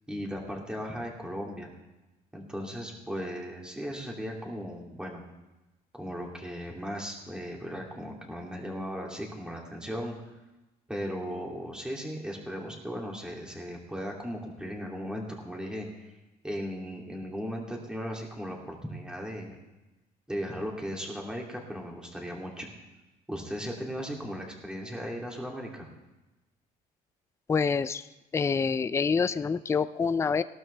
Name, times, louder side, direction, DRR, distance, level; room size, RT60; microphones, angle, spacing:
voice 1, 0.1-1.7 2.3-5.2 5.9-10.1 10.9-16.2 16.4-19.6 20.3-22.7 23.3-25.9, equal, 5° right, -1 dB, 2.7 m, -37 dB
voice 2, 27.5-28.1 28.3-30.4, left 5 dB, 15° left, 14 dB, 0.4 m, -26 dB
17.5 x 12.5 x 3.4 m, 1.0 s
cardioid pair, 110°, 17 cm